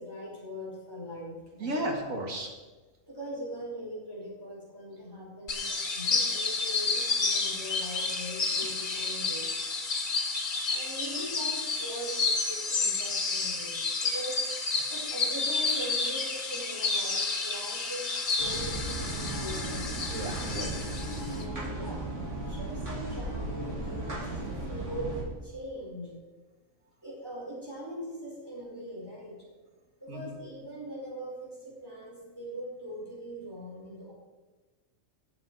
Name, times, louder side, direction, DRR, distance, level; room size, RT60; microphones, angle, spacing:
voice 1, 0.0-1.8 3.1-9.5 10.6-14.4 14.9-18.1 18.4-19.9 21.2-22.0 22.5-26.2 27.0-29.5 30.0-34.1, equal, 15° right, -5 dB, 4.7 m, -41 dB
voice 2, 1.6-2.5 20.1-20.9 21.2-21.4 30.1-30.4, right 1 dB, 90° right, 2 dB, 2.2 m, -34 dB
sound 1, 5.5-21.4, left 3 dB, 80° left, 2.0 m, -30 dB
sound 2, 18.4-25.2, right 2 dB, 65° right, 3.2 m, -36 dB
18.0 x 7.5 x 4.7 m, 1.2 s
omnidirectional pair, 1.4 m